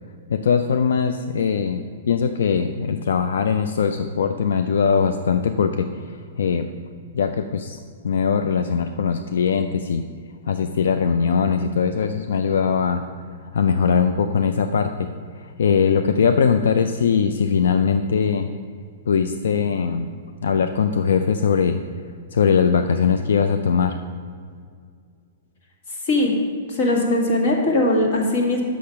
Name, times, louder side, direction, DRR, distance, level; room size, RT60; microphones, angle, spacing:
voice 1, 0.3-1.8 2.1-5.9 6.4-6.7 7.1-7.8 8.0-10.0 10.5-13.0 13.5-15.1 15.6-18.5 19.1-20.1 20.4-21.8 22.3-24.0, left 6 dB, 85° left, 8 dB, 0.4 m, -20 dB
voice 2, 26.7-28.6, left 1 dB, 50° left, -1 dB, 1.9 m, -20 dB
6.7 x 6.3 x 5.7 m, 2.1 s
hypercardioid pair, 160°, 0 cm